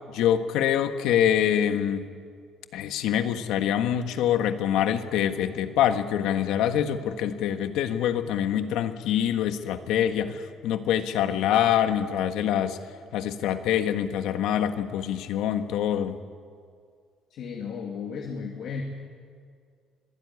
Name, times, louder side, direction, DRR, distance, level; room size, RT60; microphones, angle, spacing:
voice 1, 0.1-2.1 2.7-12.8 13.1-16.2, left 10 dB, 85° left, 8 dB, 1.5 m, -25 dB
voice 2, 17.3-18.8, left 6 dB, 65° left, 1 dB, 2.5 m, -34 dB
25.0 x 16.5 x 9.6 m, 2.1 s
cardioid pair, 140°, 0 cm